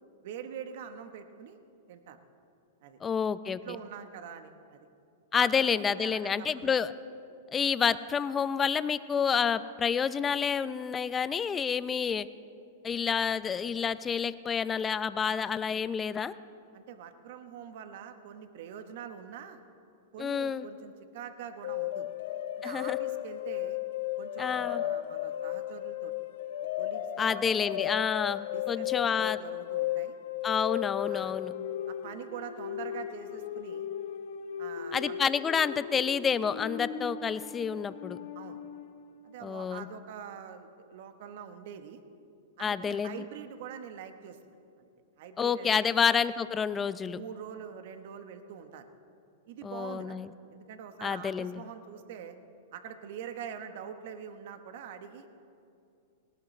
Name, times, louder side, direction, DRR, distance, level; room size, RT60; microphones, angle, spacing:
voice 1, 0.2-1.6 1.9-2.2 2.8-3.0 3.4-4.8 5.3-5.5 5.8-6.7 16.7-19.6 20.1-22.1 22.6-23.8 24.2-26.1 26.8-28.0 28.5-30.1 31.1-31.4 31.9-33.9 34.6-35.2 38.3-38.6 39.2-42.0 42.6-44.5 45.2-46.0 47.1-48.9 49.5-50.2 50.5-52.4 52.7-55.3, right 8 dB, 60° right, 8 dB, 1.1 m, -44 dB
voice 2, 3.0-3.6 5.3-6.9 7.5-12.3 12.8-16.4 20.2-20.7 22.6-23.0 24.4-24.8 27.2-29.4 30.4-31.5 34.9-38.2 39.4-39.9 42.6-43.2 45.4-47.2 49.6-50.3 51.0-51.6, left 6 dB, 20° left, 14 dB, 0.5 m, -29 dB
sound 1, 21.6-39.0, left 12 dB, 70° left, 0.9 m, -35 dB
19.0 x 18.5 x 3.2 m, 2.5 s
hypercardioid pair, 120°, 0 cm